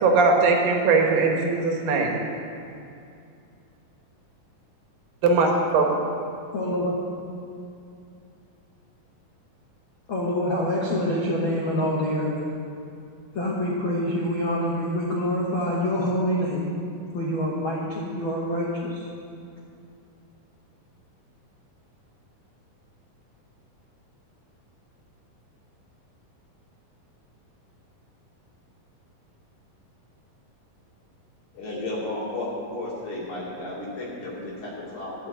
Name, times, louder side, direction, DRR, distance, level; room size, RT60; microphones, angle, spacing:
voice 1, 0.0-2.2 5.2-5.9, right 3 dB, 75° right, 1 dB, 2.8 m, -20 dB
voice 2, 6.5-6.9 10.1-12.3 13.3-16.7 17.1-19.1, equal, 90° left, -5 dB, 1.1 m, -26 dB
voice 3, 31.5-35.3, left 2 dB, 60° left, -6 dB, 3.7 m, -33 dB
11.0 x 5.7 x 7.8 m, 2.5 s
omnidirectional pair, 4.1 m